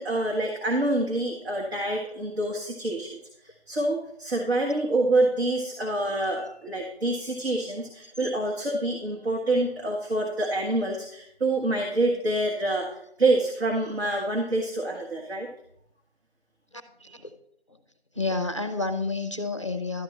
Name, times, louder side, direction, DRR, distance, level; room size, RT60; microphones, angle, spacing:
voice 1, 0.0-15.5, right 2 dB, 70° right, 0 dB, 1.6 m, -27 dB
voice 2, 17.0-17.3 17.7-17.8 18.1-20.0, left 3 dB, 30° left, 9 dB, 0.5 m, -30 dB
12.0 x 7.1 x 3.2 m, 0.72 s
figure-of-eight pair, 165°, 33 cm